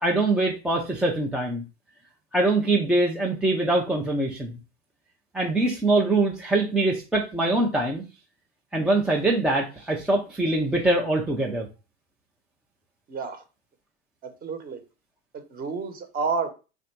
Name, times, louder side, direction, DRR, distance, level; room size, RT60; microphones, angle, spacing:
voice 1, 0.0-1.6 2.3-4.6 5.3-8.1 8.7-11.7, right 2 dB, 5° right, 0.3 m, -23 dB
voice 2, 13.1-13.4 14.2-14.8 15.3-16.5, right 4 dB, 25° right, 0.9 m, -30 dB
3.3 x 2.5 x 4.3 m
hypercardioid pair, 115°, 35 cm